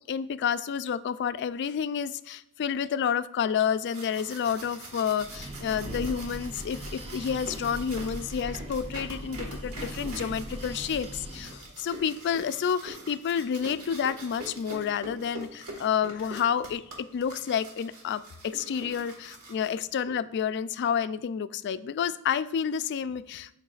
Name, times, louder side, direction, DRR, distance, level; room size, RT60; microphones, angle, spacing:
voice 1, 0.1-23.5, left 7 dB, 55° left, 14 dB, 0.3 m, -30 dB
sound 1, 3.7-20.1, right 1 dB, 85° right, 1.7 m, -44 dB
Breathing, 5.1-11.7, right 1 dB, 30° right, 0.7 m, -39 dB
11.5 x 4.6 x 2.4 m, 0.79 s
head